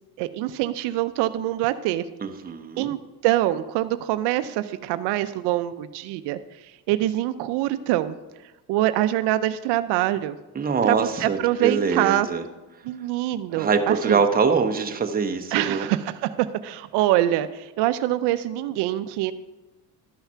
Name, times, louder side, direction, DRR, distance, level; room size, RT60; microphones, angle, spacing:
voice 1, 0.2-2.1 2.8-3.0 3.2-8.2 8.7-10.4 10.8-12.3 12.8-14.2 15.5-19.3, right 14 dB, 85° right, 12 dB, 0.6 m, -24 dB
voice 2, 2.2-2.9 10.5-12.4 13.5-15.9, right 5 dB, 20° right, 5 dB, 0.9 m, -23 dB
12.0 x 5.7 x 5.6 m, 1.1 s
cardioid pair, 115°, 39 cm